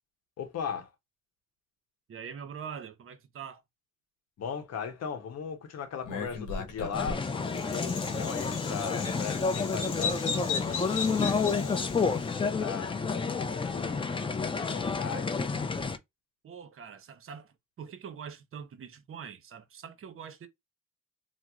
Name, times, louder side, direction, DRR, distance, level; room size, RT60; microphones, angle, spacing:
voice 1, 0.4-0.9 4.4-14.1 14.4-15.4, left 6 dB, 55° left, 0.8 m, -39 dB
voice 2, 2.1-3.6 16.4-20.5, right 7 dB, 45° right, 0.7 m, -43 dB
Bird vocalization bird call bird song, 6.0-12.3, left 5 dB, 90° left, 1.0 m, -37 dB
sound 1, 6.9-16.0, left 4 dB, 15° left, 0.4 m, -30 dB
2.9 x 2.0 x 3.5 m
cardioid pair, 90°, 30 cm